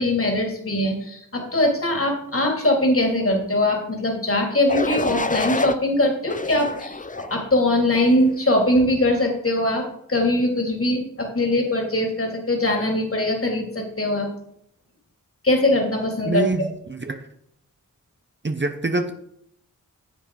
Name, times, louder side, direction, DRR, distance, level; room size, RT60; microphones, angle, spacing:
voice 1, 0.0-9.8 10.1-14.3 15.4-16.5, left 1 dB, 40° left, 1 dB, 3.2 m, -21 dB
sound 1, 4.7-5.8 6.3-7.3 7.9-8.3, left 3 dB, 25° left, 0.7 m, -27 dB
voice 2, 16.3-17.3 18.4-19.1, right 2 dB, 35° right, 7 dB, 1.0 m, -25 dB
10.5 x 7.7 x 4.9 m, 0.72 s
cardioid pair, 40°, 34 cm